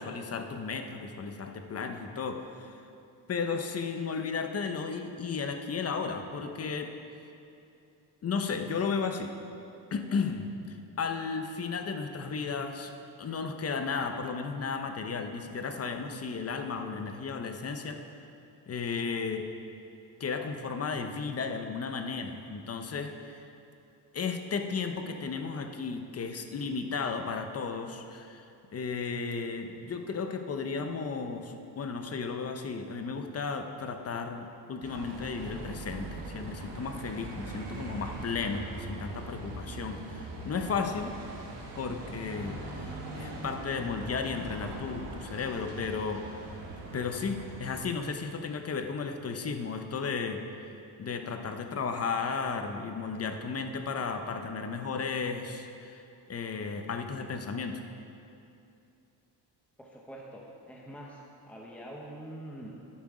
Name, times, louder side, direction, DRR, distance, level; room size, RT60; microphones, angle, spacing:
voice 1, 0.0-2.8 3.3-6.9 8.2-9.3 9.9-12.9 13.2-18.2 18.7-19.5 20.2-23.4 24.1-28.4 28.7-41.1 41.8-42.9 43.1-46.2 46.9-50.4 51.0-56.0 56.3-57.8, left 5 dB, 35° left, 6 dB, 0.8 m, -34 dB
Bus, 34.8-47.8, right 2 dB, 85° right, 1.9 m, -41 dB
voice 2, 59.8-62.9, right 1 dB, 5° left, -2 dB, 1.0 m, -45 dB
10.5 x 8.2 x 4.9 m, 2.7 s
cardioid pair, 105°, 41 cm